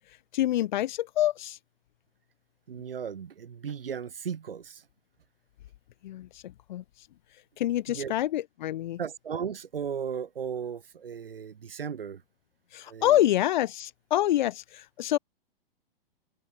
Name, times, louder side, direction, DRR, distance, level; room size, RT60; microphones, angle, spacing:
voice 1, 0.3-1.6 6.0-6.8 7.6-9.0 12.7-15.2, left 13 dB, 50° left, 1.6 m, -27 dB
voice 2, 2.7-4.8 7.9-8.1 9.0-12.2 12.9-13.2, right 7 dB, 70° right, 2.1 m, -36 dB
figure-of-eight pair, 110°, 30 cm